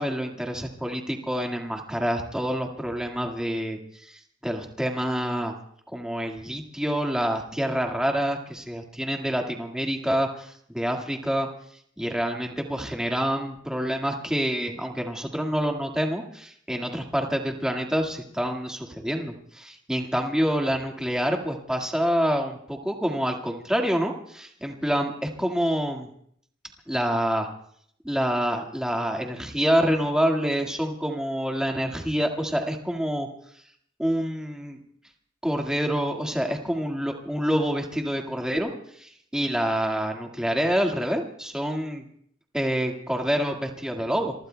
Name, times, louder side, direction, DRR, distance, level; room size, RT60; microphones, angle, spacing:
voice 1, 0.0-5.5 5.9-11.5 12.0-26.1 26.9-27.5 28.0-33.3 34.0-34.8 35.4-38.7 39.0-42.0 42.5-44.3, equal, 5° right, 2 dB, 1.8 m, -27 dB
26.5 x 24.0 x 2.2 m, 0.66 s
head